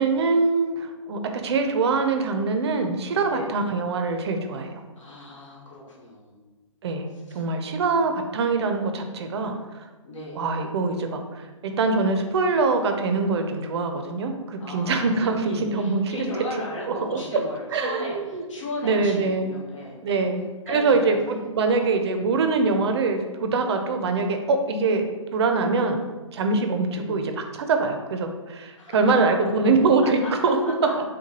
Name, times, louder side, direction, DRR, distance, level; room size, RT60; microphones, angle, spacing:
voice 1, 0.0-4.8 6.8-9.6 10.4-16.0 16.9-17.4 17.7-18.4 18.8-19.5 20.0-25.1 25.3-26.0 26.3-30.6, right 3 dB, 55° right, 5 dB, 0.5 m, -24 dB
voice 2, 5.0-6.4 7.3-7.4 10.0-10.4 14.6-20.3 20.7-22.1 26.9-27.2 28.6-29.6 30.0-30.9, left 1 dB, 70° left, -4 dB, 1.3 m, -36 dB
4.5 x 2.2 x 2.9 m, 1.2 s
hypercardioid pair, 135°, 17 cm